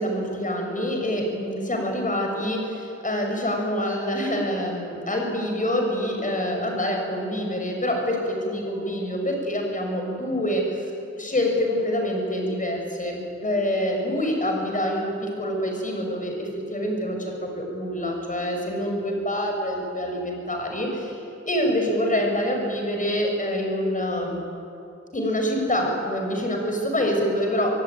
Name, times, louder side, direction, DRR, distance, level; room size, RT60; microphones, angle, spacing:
voice 1, 0.0-10.9 11.2-21.2 21.4-24.4 25.1-27.8, equal, 25° left, 1 dB, 6.3 m, -26 dB
25.5 x 22.5 x 9.5 m, 2.6 s
wide cardioid pair, 150°, 29 cm